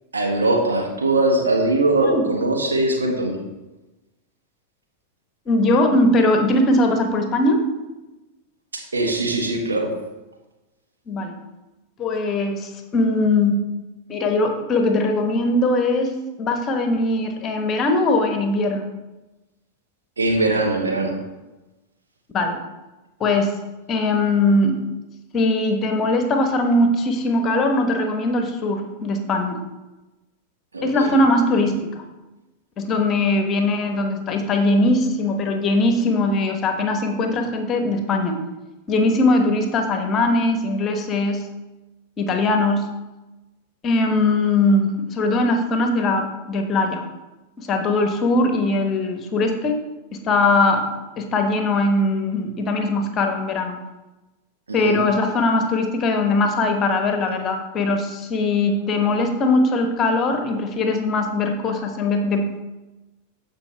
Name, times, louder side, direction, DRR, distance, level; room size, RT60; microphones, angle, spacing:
voice 1, 0.1-3.4 8.7-9.9 20.2-21.2 30.7-31.1 54.7-55.1, right 2 dB, 75° right, 1 dB, 1.6 m, -21 dB
voice 2, 5.5-7.6 11.1-11.3 12.0-13.6 14.1-16.1 16.4-18.9 22.3-22.6 23.2-23.5 23.9-24.8 25.3-29.6 30.8-32.0 32.8-38.4 38.9-41.4 42.2-42.8 43.8-47.0 47.6-49.8 50.1-50.9 51.2-53.7 54.7-62.6, left 2 dB, 30° left, 5 dB, 1.2 m, -20 dB
14.5 x 5.2 x 3.4 m, 1.1 s
figure-of-eight pair, 90°, 0 cm